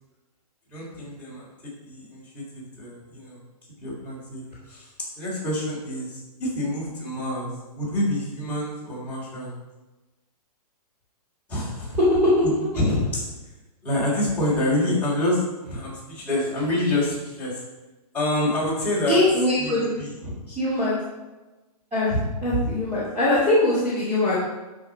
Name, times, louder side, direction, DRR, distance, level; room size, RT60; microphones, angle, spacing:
voice 1, 0.7-1.5 1.8-3.4 3.8-4.9 5.2-9.6 11.5-12.0 12.4-13.2 13.8-17.6 18.1-19.2 19.6-20.3, left 1 dB, 5° left, -9 dB, 3.7 m, -27 dB
voice 2, 19.1-19.9 20.5-21.0 21.9-24.4, left 1 dB, 10° right, -11 dB, 2.6 m, -22 dB
12.5 x 5.7 x 4.9 m, 1.1 s
hypercardioid pair, 170°, 20 cm